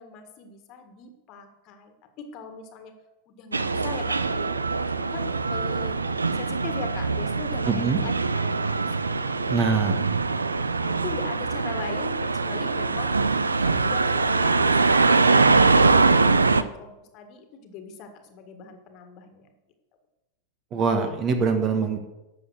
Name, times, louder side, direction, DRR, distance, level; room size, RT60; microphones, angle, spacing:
voice 1, 0.0-2.9 3.3-6.0 6.3-10.0 10.6-19.5, left 5 dB, 40° left, 6 dB, 1.8 m, -40 dB
sound 1, 3.5-16.6, right 4 dB, 80° right, 0.5 m, -23 dB
voice 2, 7.7-8.0 9.5-10.0 20.7-22.0, right 5 dB, 30° right, 7 dB, 1.6 m, -23 dB
12.0 x 7.4 x 6.6 m, 1.0 s
figure-of-eight pair, 90°, 0 cm